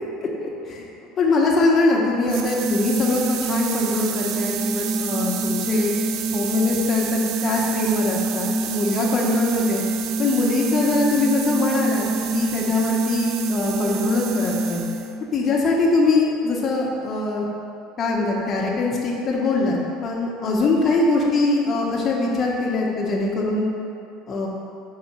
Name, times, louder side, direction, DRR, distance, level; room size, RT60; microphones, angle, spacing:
voice 1, 0.2-0.9 1.2-5.9 6.3-9.8 10.2-14.8 15.3-17.5 18.0-23.6 24.3-24.5, left 3 dB, 30° left, -3 dB, 1.2 m, -22 dB
sound 1, 2.3-15.2, right 4 dB, 60° right, 0.4 m, -26 dB
4.8 x 4.2 x 5.6 m, 2.7 s
cardioid pair, 135°, 0 cm